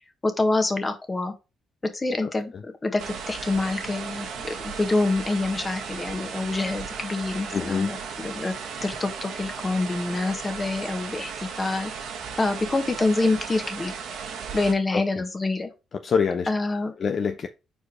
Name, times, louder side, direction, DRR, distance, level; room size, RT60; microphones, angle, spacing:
voice 1, 0.2-1.3 1.9-2.5 2.8-8.5 8.8-11.3 11.6-11.9 12.4-13.9 14.5-15.7 16.5-16.9, left 2 dB, 25° left, 1.4 m, -26 dB
voice 2, 2.2-2.6 7.5-7.9 14.9-15.2 15.9-16.5 17.0-17.5, left 6 dB, 50° left, 0.5 m, -26 dB
sound 1, 3.0-14.7, right 6 dB, 80° right, 1.2 m, -36 dB
4.8 x 4.4 x 4.8 m
cardioid pair, 90°, 0 cm